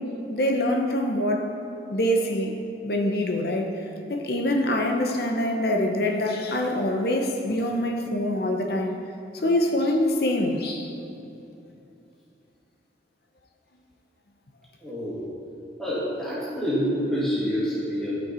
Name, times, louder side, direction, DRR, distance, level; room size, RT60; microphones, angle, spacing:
voice 1, 0.3-1.5 1.9-2.6 2.8-3.8 4.1-8.9 9.3-10.9, left 1 dB, 55° left, 2 dB, 0.8 m, -25 dB
voice 2, 14.8-15.2 15.8-18.2, equal, 5° left, -10 dB, 2.2 m, -27 dB
13.0 x 6.4 x 4.4 m, 2.7 s
head